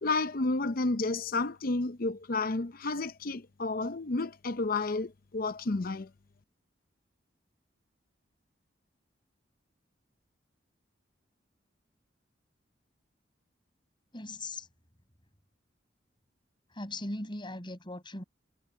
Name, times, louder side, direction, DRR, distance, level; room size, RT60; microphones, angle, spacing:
voice 1, 0.0-6.1, left 3 dB, 50° left, 0.7 m, -31 dB
voice 2, 14.1-14.7 16.7-18.2, left 2 dB, 25° left, 6.6 m, -39 dB
head